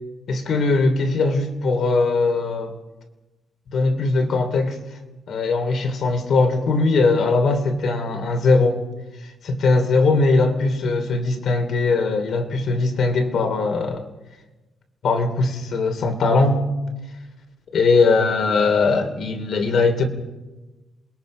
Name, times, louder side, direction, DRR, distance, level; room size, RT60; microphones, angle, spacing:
voice 1, 0.3-2.7 3.7-4.8 5.3-8.8 9.2-14.0 15.0-16.6 17.7-20.0, left 3 dB, 60° left, 5 dB, 3.0 m, -20 dB
28.0 x 21.5 x 5.3 m, 1.1 s
cardioid pair, 135°, 0 cm